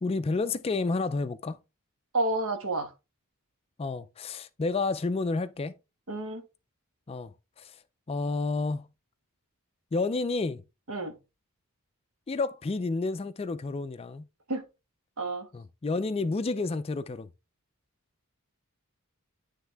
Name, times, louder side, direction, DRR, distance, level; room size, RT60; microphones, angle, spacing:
voice 1, 0.0-1.6 3.8-5.8 7.1-7.3 7.6-7.7 8.1-8.8 9.9-10.6 12.3-14.3 15.5-17.3, left 3 dB, 25° left, 0.3 m, -30 dB
voice 2, 2.1-2.9 6.1-6.4 10.9-11.1 14.5-14.6 15.2-15.5, right 2 dB, 70° right, 1.3 m, -30 dB
9.2 x 3.5 x 3.4 m
head